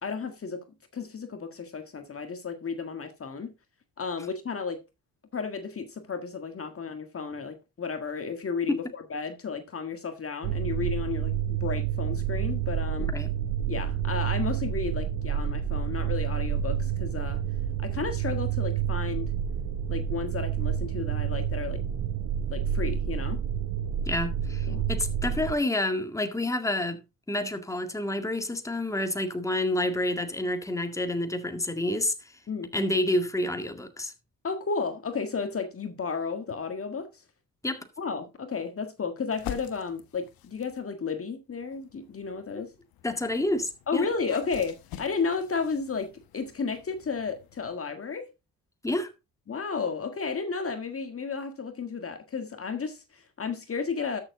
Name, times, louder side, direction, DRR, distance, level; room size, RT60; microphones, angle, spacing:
voice 1, 0.0-0.6 0.9-3.5 4.0-4.8 5.3-13.1 13.7-17.4 17.8-19.3 19.9-21.8 22.5-23.4 24.7-24.9 32.5-32.7 34.4-37.2 38.0-42.7 43.9-48.3 49.5-54.2, left 5 dB, 40° left, 1.7 m, -33 dB
sound 1, 10.4-25.6, right 9 dB, 75° right, 1.1 m, -29 dB
voice 2, 13.0-13.3 24.1-27.0 27.3-32.4 32.7-34.1 37.6-37.9 42.5-42.7 43.0-44.1 48.8-49.1, left 1 dB, 10° left, 1.8 m, -29 dB
sound 2, 39.3-40.9 41.6-47.8, left 10 dB, 80° left, 1.3 m, -46 dB
12.5 x 7.0 x 3.7 m
cardioid pair, 75°, 35 cm